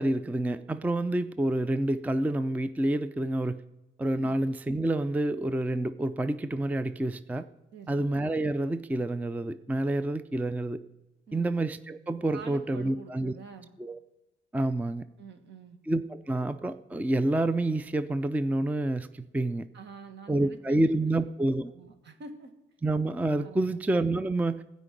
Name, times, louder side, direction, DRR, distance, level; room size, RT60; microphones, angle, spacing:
voice 1, 0.0-3.6 4.0-7.5 7.9-10.8 11.3-13.3 13.8-14.0 14.5-15.0 15.9-19.7 20.3-21.7 22.8-24.6, right 2 dB, 10° right, 13 dB, 0.4 m, -28 dB
voice 2, 7.7-8.1 11.3-11.5 12.3-13.7 15.2-15.8 19.7-21.2 21.7-22.5 23.4-23.8, right 5 dB, 65° right, 8 dB, 1.7 m, -47 dB
15.5 x 5.2 x 9.0 m, 1.0 s
cardioid pair, 90°, 20 cm